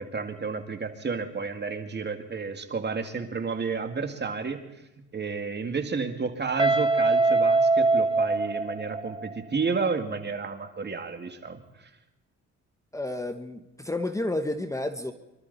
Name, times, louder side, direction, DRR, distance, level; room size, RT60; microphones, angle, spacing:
voice 1, 0.0-4.6 5.1-11.6, right 5 dB, 35° right, 7 dB, 2.1 m, -31 dB
Guitar, 6.6-9.4, right 3 dB, 15° right, 1.1 m, -23 dB
voice 2, 12.9-15.1, left 1 dB, 10° left, 8 dB, 1.2 m, -31 dB
25.5 x 13.0 x 4.1 m, 0.98 s
cardioid pair, 90°, 30 cm